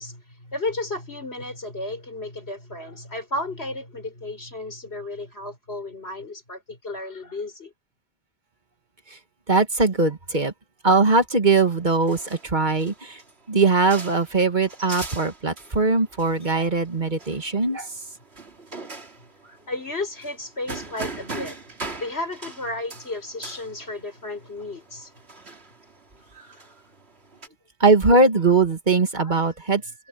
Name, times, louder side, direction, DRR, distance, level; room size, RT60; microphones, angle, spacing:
voice 1, 0.0-7.7 19.7-21.6 22.0-25.1 29.2-29.4, left 2 dB, 85° left, 5.6 m, -33 dB
voice 2, 9.5-10.5 10.8-13.2 13.5-18.0 26.4-26.5 27.8-29.8, right 3 dB, 50° right, 2.0 m, -20 dB
sound 1, 11.5-27.5, right 3 dB, 85° right, 3.1 m, -41 dB
omnidirectional pair, 1.1 m